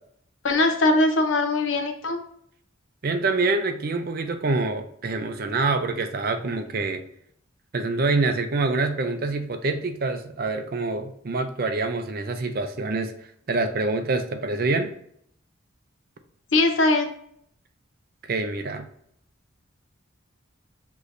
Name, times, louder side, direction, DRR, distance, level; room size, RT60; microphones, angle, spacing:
voice 1, 0.4-2.2 16.5-17.1, left 2 dB, 70° left, 5 dB, 0.7 m, -21 dB
voice 2, 3.0-7.0 7.7-13.1 13.5-14.9 18.3-18.9, right 3 dB, 45° right, 8 dB, 0.5 m, -26 dB
6.5 x 3.1 x 2.6 m, 0.68 s
head